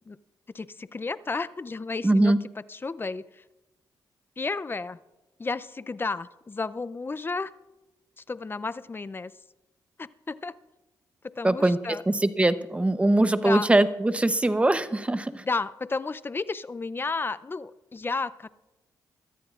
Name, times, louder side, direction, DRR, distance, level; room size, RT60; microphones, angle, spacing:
voice 1, 0.5-2.3 2.7-3.2 4.4-5.0 5.4-7.5 8.3-9.3 10.0-10.5 11.4-12.0 13.4-13.7 15.4-18.5, left 3 dB, 30° left, 17 dB, 0.5 m, -32 dB
voice 2, 2.0-2.4 11.4-11.8 12.1-15.4, right 2 dB, 15° right, 12 dB, 0.8 m, -22 dB
23.0 x 13.5 x 2.5 m, 1.0 s
cardioid pair, 70°, 8 cm